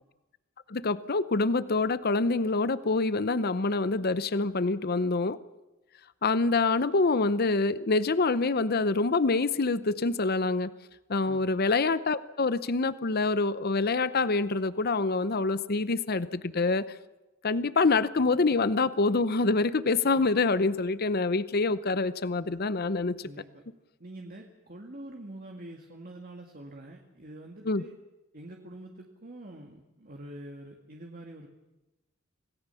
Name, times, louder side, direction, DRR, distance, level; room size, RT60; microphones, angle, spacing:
voice 1, 0.7-5.4 6.2-10.7 11.1-16.9 17.4-23.3 27.6-27.8, left 3 dB, 50° left, 15 dB, 0.8 m, -26 dB
voice 2, 23.2-23.6 24.0-27.9 28.3-31.5, right 1 dB, 45° right, 2 dB, 1.9 m, -45 dB
26.5 x 18.0 x 7.0 m, 1.0 s
head